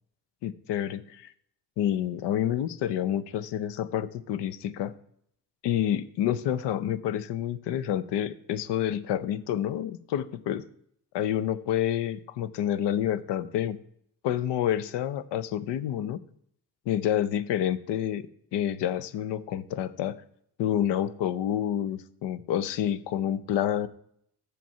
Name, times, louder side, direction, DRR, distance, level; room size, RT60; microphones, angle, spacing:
voice 1, 0.4-1.3 1.8-4.9 5.6-10.6 11.1-13.8 14.2-16.2 16.9-18.2 18.5-20.2 20.6-23.9, left 10 dB, 85° left, 17 dB, 0.8 m, -28 dB
7.7 x 6.9 x 5.5 m, 0.67 s
cardioid pair, 125°, 41 cm